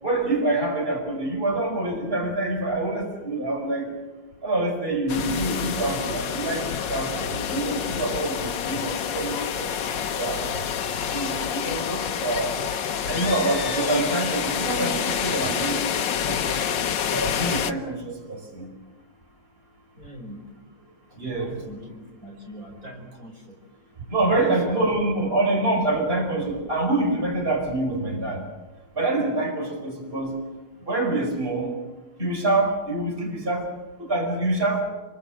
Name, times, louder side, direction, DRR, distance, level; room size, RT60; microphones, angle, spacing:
voice 1, 0.0-3.9 4.4-6.6 6.9-9.6 10.1-10.5 11.1-12.5 13.1-16.5 17.1-18.7 21.2-21.6 24.1-28.4 29.0-30.3 30.8-31.7 32.2-33.7 34.1-34.9, right 2 dB, 30° right, 1 dB, 5.1 m, -26 dB
sound 1, 5.1-17.7, left 7 dB, 75° left, 1.8 m, -28 dB
voice 2, 20.0-20.4 21.3-21.9 22.2-23.6 24.2-24.8, right 1 dB, 50° right, 1 dB, 5.5 m, -39 dB
29.0 x 22.0 x 7.8 m, 1.2 s
omnidirectional pair, 2.0 m